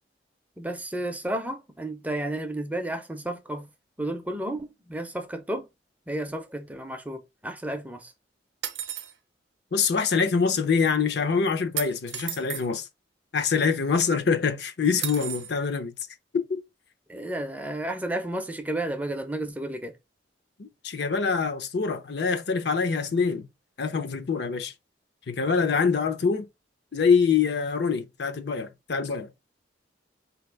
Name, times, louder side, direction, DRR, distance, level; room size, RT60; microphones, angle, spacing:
voice 1, 0.6-3.7 4.0-5.7 6.1-8.1 17.1-19.9, right 1 dB, 10° right, 0.5 m, -32 dB
sound 1, 8.6-9.1 11.8-12.7 15.0-15.5, right 11 dB, 70° right, 0.6 m, -33 dB
voice 2, 9.7-12.9 13.3-15.9 16.3-16.6 20.6-23.5 23.8-24.7 25.3-26.5 26.9-29.3, left 5 dB, 60° left, 0.6 m, -25 dB
4.2 x 2.9 x 3.2 m
head